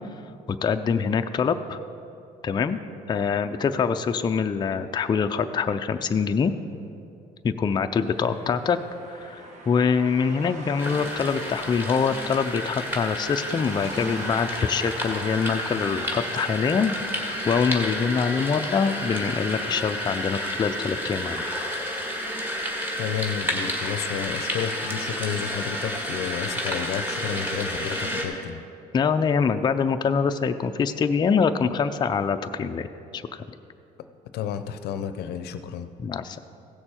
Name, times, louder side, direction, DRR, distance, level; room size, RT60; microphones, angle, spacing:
voice 1, 0.6-1.8 2.4-2.8 3.1-6.5 7.4-8.8 9.1-21.4 28.9-32.9 33.1-33.4 36.0-36.4, left 6 dB, 25° left, 7 dB, 0.4 m, -24 dB
sound 1, 8.0-19.4, right 1 dB, 45° right, 1.4 m, -42 dB
sound 2, 10.8-28.2, equal, 10° right, 1.8 m, -31 dB
voice 2, 23.0-28.6 34.3-35.9, left 8 dB, 75° left, 10 dB, 0.6 m, -31 dB
16.0 x 6.7 x 4.4 m, 2.6 s
cardioid pair, 110°, 17 cm